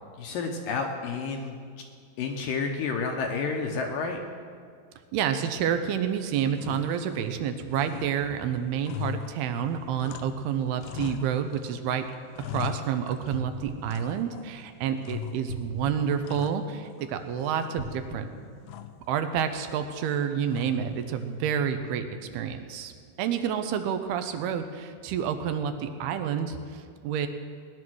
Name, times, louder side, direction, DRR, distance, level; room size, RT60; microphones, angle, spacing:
voice 1, 0.2-1.6 2.2-4.2, left 4 dB, 70° left, 3 dB, 2.3 m, -30 dB
voice 2, 5.1-12.1 12.5-18.3 19.1-22.1 22.3-27.3, right 8 dB, 80° right, 8 dB, 2.7 m, -29 dB
sound 1, 5.6-6.2 6.5-7.5 7.7-10.5 10.8-11.8 12.1-13.5 13.9-14.6 15.0-15.7 16.0-17.1 17.4-18.1 18.7-19.1 20.5-21.0, left 11 dB, 90° left, 1.9 m, -40 dB
sound 2, 13.3-14.9 15.4-17.0 17.7-19.4 19.9-20.0, right 1 dB, 50° right, 3.1 m, -41 dB
18.5 x 11.0 x 6.2 m, 2.1 s
omnidirectional pair, 4.7 m